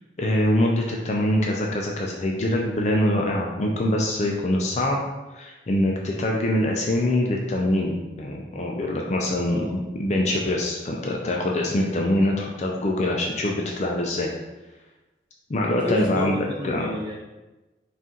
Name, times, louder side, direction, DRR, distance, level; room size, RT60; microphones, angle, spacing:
voice 1, 0.2-5.0 5.3-14.3 15.5-16.4 16.6-16.9, left 1 dB, 40° left, 0 dB, 0.4 m, -24 dB
voice 2, 15.8-17.2, left 1 dB, 25° right, -2 dB, 0.7 m, -29 dB
4.1 x 2.4 x 3.7 m, 1.1 s
head